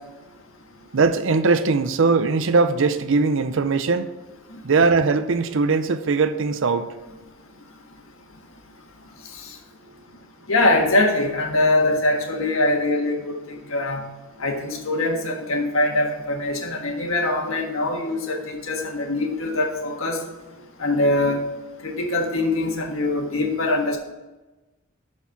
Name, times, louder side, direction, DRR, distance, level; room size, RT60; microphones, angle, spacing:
voice 1, 0.9-4.1 4.6-6.9 20.6-20.7, right 4 dB, 65° right, 0.6 m, -20 dB
voice 2, 10.5-14.1 14.4-20.2 20.8-21.4 21.8-24.0, left 2 dB, 75° left, 1.6 m, -23 dB
12.5 x 4.7 x 5.8 m
head